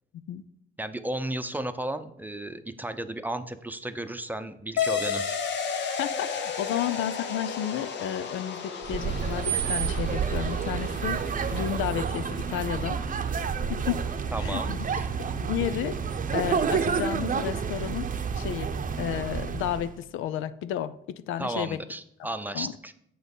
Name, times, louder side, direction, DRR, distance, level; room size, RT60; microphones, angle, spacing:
voice 1, 0.1-0.5 6.0-11.2 11.5-13.0 13.7-14.0 14.4-14.9 15.2-18.1 18.3-21.8 22.5-22.7, left 10 dB, 85° left, 0.5 m, -32 dB
voice 2, 0.8-5.4 6.7-6.8 14.3-15.0 21.4-22.9, right 1 dB, 10° right, 0.7 m, -34 dB
sound 1, 4.8-13.8, left 6 dB, 65° left, 1.0 m, -34 dB
sound 2, 8.8-19.9, right 6 dB, 40° right, 0.7 m, -29 dB
7.7 x 6.0 x 5.4 m
cardioid pair, 90°, 20 cm